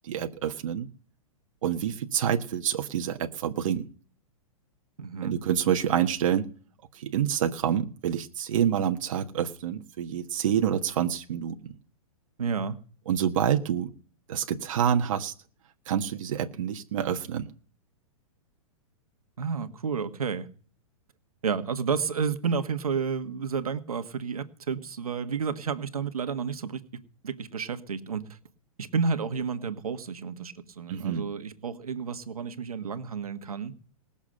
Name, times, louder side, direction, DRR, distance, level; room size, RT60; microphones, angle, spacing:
voice 1, 0.0-0.9 1.6-3.8 5.2-6.5 6.9-11.7 13.1-13.9 14.3-15.3 15.9-17.5 30.9-31.2, right 9 dB, 65° right, 5 dB, 1.4 m, -27 dB
voice 2, 5.0-5.4 12.4-12.8 19.4-20.5 21.4-26.8 27.2-28.3 28.8-33.7, right 5 dB, 90° right, 9 dB, 1.5 m, -31 dB
20.0 x 7.2 x 6.5 m, 0.43 s
hypercardioid pair, 130°, 18 cm